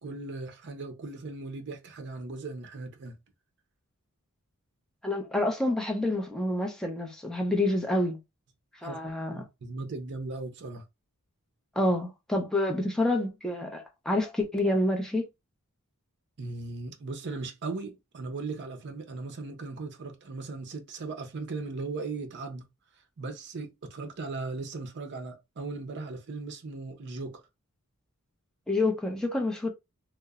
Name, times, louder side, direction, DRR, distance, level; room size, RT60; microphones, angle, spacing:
voice 1, 0.0-3.2 8.8-9.0 9.3-10.8 16.4-22.7 23.2-27.4, right 3 dB, 50° right, 0.5 m, -38 dB
voice 2, 5.0-8.2 8.8-9.4 11.8-15.3 28.7-29.7, left 1 dB, 5° left, 0.5 m, -28 dB
2.8 x 2.0 x 2.3 m
head